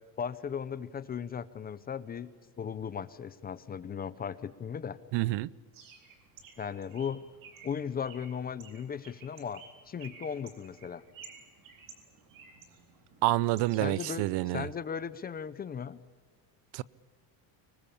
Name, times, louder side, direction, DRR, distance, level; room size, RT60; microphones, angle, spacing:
voice 1, 0.2-2.3 2.6-5.0 6.6-7.2 7.6-11.0 13.8-14.3 14.5-16.0, left 7 dB, 20° left, 0.7 m, -37 dB
voice 2, 5.1-5.5 13.2-14.7 16.7-16.8, right 18 dB, 65° right, 0.7 m, -28 dB
Bird, 5.7-14.5, right 6 dB, 45° right, 4.1 m, -54 dB
25.0 x 20.0 x 8.6 m
cardioid pair, 170°, 45 cm